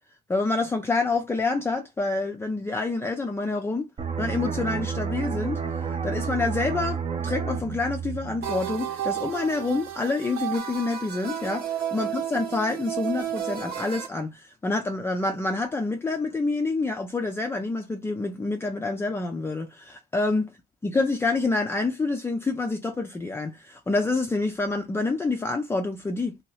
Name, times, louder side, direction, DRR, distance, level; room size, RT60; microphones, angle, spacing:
voice 1, 0.3-3.9 4.2-20.5 20.8-26.4, left 3 dB, 15° left, 0.4 m, -27 dB
sound 1, 4.0-9.4 9.7-9.9, right 6 dB, 35° right, 0.7 m, -31 dB
sound 2, 8.4-14.1, right 10 dB, 65° right, 1.0 m, -32 dB
2.8 x 2.7 x 3.1 m
cardioid pair, 110°, 17 cm